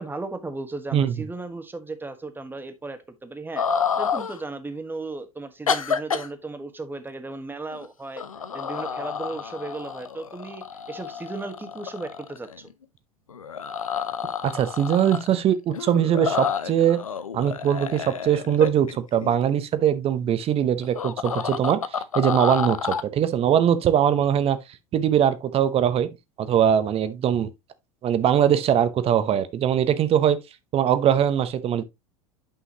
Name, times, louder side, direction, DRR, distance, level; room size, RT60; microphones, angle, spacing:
voice 1, 0.0-3.7 4.0-8.2 8.5-12.7, right 3 dB, 10° right, 1.3 m, -35 dB
sound 1, 3.6-4.4 5.7-6.3 7.7-7.9 8.2-12.7 13.3-15.4 15.7-19.3 20.8-23.0, left 6 dB, 85° left, 0.6 m, -29 dB
voice 2, 14.4-17.0 17.3-21.8 22.1-24.6 24.9-26.1 26.4-27.5 28.0-30.4 30.7-31.8, right 9 dB, 35° right, 0.9 m, -21 dB
8.6 x 5.5 x 2.9 m
figure-of-eight pair, 80°, 17 cm